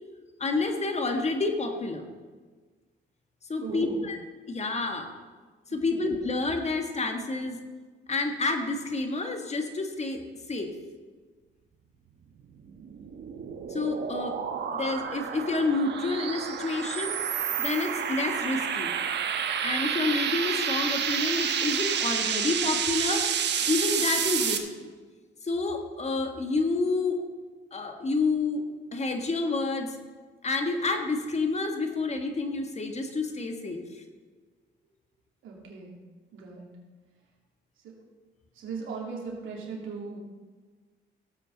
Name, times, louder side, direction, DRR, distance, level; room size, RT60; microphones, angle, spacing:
voice 1, 0.4-2.0 3.5-4.2 4.5-5.1 5.7-7.6 8.1-10.2 10.5-10.8 13.7-14.4 14.7-17.2 17.6-18.9 19.6-23.3 23.6-24.9 25.4-27.3 27.7-28.6 28.9-29.9 30.4-33.8, left 3 dB, 35° left, 5 dB, 1.5 m, -29 dB
voice 2, 3.6-4.0 5.7-6.1 35.4-36.0 36.3-36.7 37.8-38.0 38.5-40.2, right 5 dB, 80° right, -2 dB, 2.9 m, -38 dB
sound 1, 12.6-24.6, right 8 dB, 60° right, 1.1 m, -29 dB
17.0 x 8.1 x 4.0 m, 1.4 s
cardioid pair, 90°, 20 cm